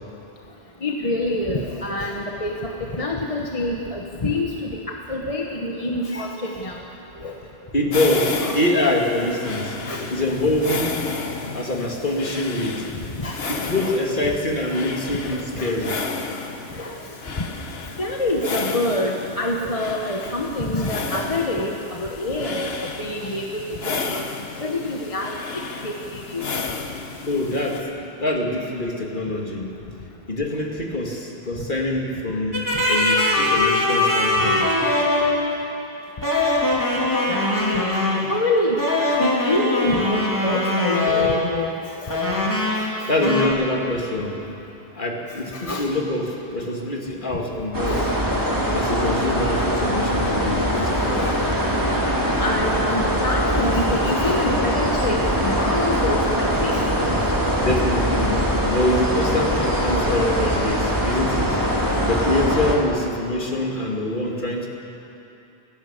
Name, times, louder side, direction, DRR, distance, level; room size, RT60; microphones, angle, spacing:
voice 1, 0.8-6.8 7.2-7.3 8.3-8.6 9.8-10.1 12.9-14.0 15.2-16.0 16.7-17.0 17.4-17.5 18.0-21.7 22.0-24.2 24.6-25.4 25.8-26.5 37.3-37.8 38.3-38.8 39.2-41.7 42.0-42.2 42.7-43.1 45.5-45.9 47.9-48.1 50.7-50.9 51.2-51.4 52.4-56.9 57.7-57.8, left 1 dB, 35° left, 0 dB, 1.3 m, -27 dB
voice 2, 7.7-9.8 10.1-11.0 11.5-12.9 13.5-16.0 27.3-29.8 30.3-34.8 43.1-44.4 45.0-48.0 48.7-51.3 57.7-64.7, left 1 dB, 50° left, 0 dB, 2.5 m, -25 dB
sound 1, 7.9-27.8, left 4 dB, 70° left, 1.4 m, -32 dB
sound 2, 32.5-35.5 36.2-38.3 38.8-41.6 42.1-42.9 43.2-43.5, left 2 dB, 15° left, 3.3 m, -21 dB
sound 3, 47.7-62.8, equal, 20° right, 2.6 m, -22 dB
29.5 x 11.5 x 8.2 m, 2.9 s
omnidirectional pair, 1.1 m